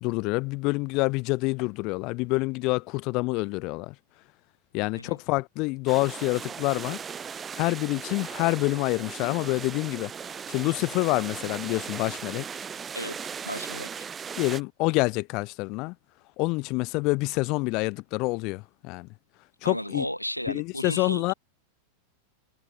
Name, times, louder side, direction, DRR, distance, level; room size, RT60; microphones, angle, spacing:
voice 1, 0.0-3.9 4.7-7.0 7.6-10.1 10.5-12.4 14.4-15.9 16.4-19.1 19.6-20.0 20.5-21.3, left 25 dB, 40° left, 0.4 m, -27 dB
sound 1, 5.9-14.6, right 7 dB, 20° right, 1.5 m, -38 dB
voice 2, 13.5-14.1 19.6-21.3, equal, 90° left, 0.7 m, -34 dB
figure-of-eight pair, 90°, 0 cm